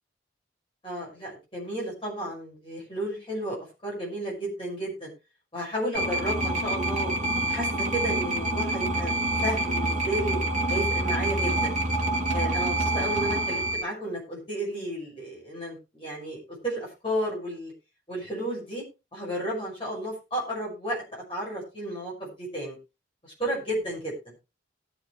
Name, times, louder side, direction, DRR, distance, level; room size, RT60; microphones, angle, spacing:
voice 1, 0.8-3.6 3.8-5.1 5.5-7.1 7.4-9.1 9.4-10.4 10.7-11.7 12.3-17.7 18.1-18.8 19.1-22.8 23.2-24.1, right 1 dB, 30° left, -4 dB, 6.2 m, -32 dB
sound 1, 5.9-13.8, right 1 dB, 40° right, 2.5 m, -27 dB
19.0 x 7.0 x 3.3 m, 0.27 s
head